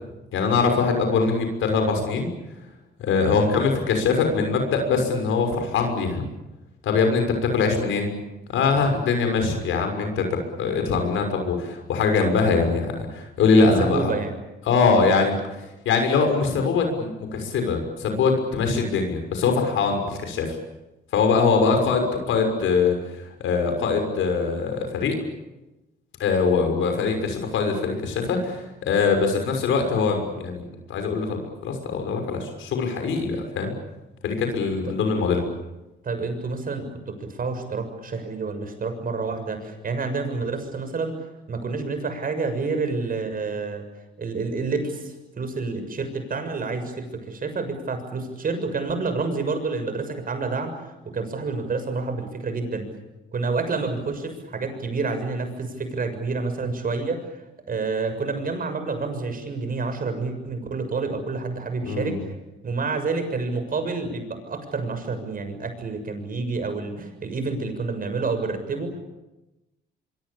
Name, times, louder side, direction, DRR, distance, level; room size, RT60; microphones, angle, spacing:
voice 1, 0.3-2.3 3.0-6.2 6.8-8.2 8.5-14.1 14.7-20.6 21.1-25.2 26.2-30.6 30.9-33.7 34.2-35.4 61.8-62.2, left 4 dB, 80° left, 5 dB, 6.2 m, -22 dB
voice 2, 13.5-14.3 36.0-41.2 41.5-43.8 44.2-52.9 53.3-57.3 57.7-62.3 62.6-69.0, right 4 dB, 45° right, 8 dB, 6.8 m, -28 dB
24.5 x 24.5 x 8.7 m, 1.0 s
cardioid pair, 90°, 20 cm